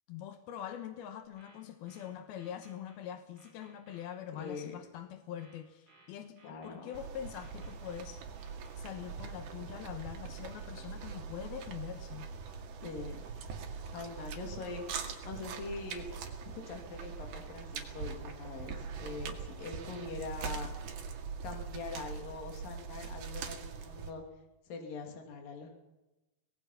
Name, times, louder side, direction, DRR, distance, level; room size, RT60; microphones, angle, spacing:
voice 1, 0.1-8.2 8.8-12.3, left 10 dB, 85° left, 8 dB, 3.1 m, -44 dB
sound 1, 1.2-3.0 3.4-4.6 5.4-7.0 7.4-9.0, right 2 dB, 25° right, 6.2 m, -62 dB
voice 2, 4.4-4.7 6.4-6.9 12.8-13.2 13.9-14.8 15.2-16.1 16.5-20.7 21.4-24.2 24.7-25.7, left 4 dB, 65° left, 3 dB, 4.6 m, -43 dB
sound 2, 6.9-24.1, right 6 dB, 85° right, 4.0 m, -42 dB
24.5 x 20.0 x 5.8 m, 1.0 s
omnidirectional pair, 4.3 m